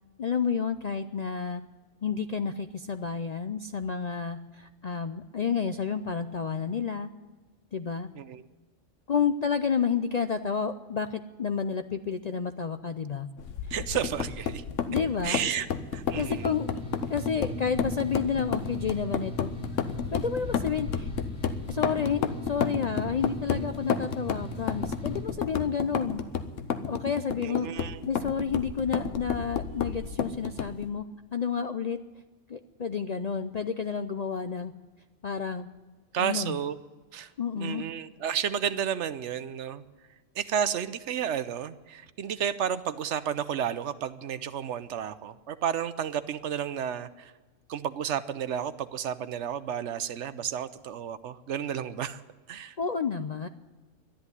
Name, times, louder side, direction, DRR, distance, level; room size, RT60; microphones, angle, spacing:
voice 1, 0.2-1.6 2.0-7.1 7.7-8.1 9.1-13.3 14.9-15.4 16.1-16.7 17.1-19.5 20.1-21.1 21.7-26.2 26.9-27.7 28.0-31.0 31.3-32.0 32.5-34.7 35.2-35.7 36.2-36.6 37.4-37.8 52.8-53.5, left 6 dB, 55° left, 9 dB, 0.4 m, -30 dB
sound 1, 13.4-30.9, left 7 dB, 80° left, 1.2 m, -32 dB
voice 2, 13.7-14.6 15.2-15.7 15.9-16.5 27.4-28.0 36.1-36.8 37.1-37.3 37.6-39.8 40.4-47.3 47.7-52.2 52.5-52.8, right 8 dB, 70° right, 14 dB, 1.0 m, -32 dB
sound 2, 16.1-25.2, left 1 dB, 20° right, 5.8 m, -40 dB
13.0 x 10.5 x 9.8 m, 1.2 s
omnidirectional pair, 1.3 m